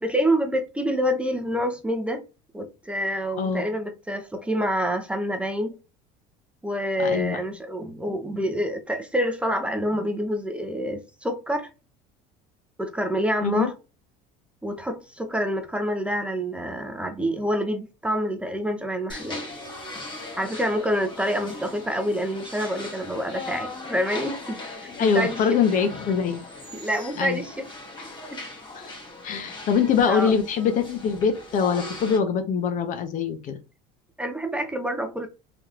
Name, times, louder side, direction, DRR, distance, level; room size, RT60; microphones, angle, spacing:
voice 1, 0.0-2.2 2.5-5.8 6.6-11.7 12.8-13.7 14.6-19.4 20.4-24.6 25.0-25.4 26.7-27.7 30.1-30.3 34.2-35.3, equal, 5° right, 0.6 m, -27 dB
voice 2, 7.0-7.4 13.4-13.7 25.0-26.4 27.2-27.4 28.7-28.9 29.2-33.5, left 6 dB, 50° left, 0.7 m, -23 dB
sound 1, 19.1-32.2, left 2 dB, 30° left, 1.3 m, -39 dB
3.5 x 2.9 x 2.4 m
supercardioid pair, 115°, 17 cm